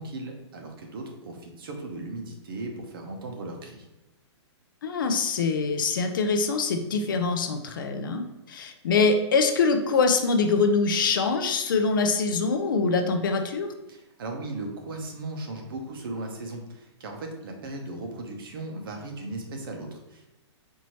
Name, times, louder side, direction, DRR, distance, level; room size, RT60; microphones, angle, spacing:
voice 1, 0.0-3.9 13.9-20.3, right 2 dB, 50° right, 2 dB, 0.8 m, -37 dB
voice 2, 4.8-13.7, left 4 dB, 45° left, 6 dB, 0.4 m, -24 dB
4.5 x 2.7 x 3.0 m, 1.0 s
hypercardioid pair, 170°, 15 cm